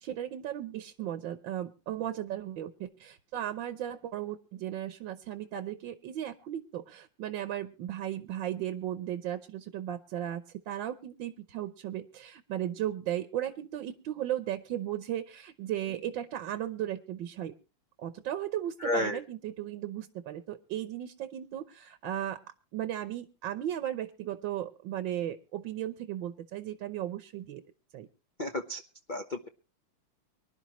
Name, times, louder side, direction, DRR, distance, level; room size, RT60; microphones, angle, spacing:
voice 1, 0.0-17.5 18.0-22.4 22.7-27.6 27.9-28.1, right 11 dB, 65° right, 9 dB, 1.5 m, -36 dB
voice 2, 18.8-19.2 28.4-28.8 29.1-29.5, left 2 dB, 45° left, 4 dB, 0.6 m, -31 dB
24.5 x 11.5 x 3.0 m, 0.33 s
omnidirectional pair, 2.4 m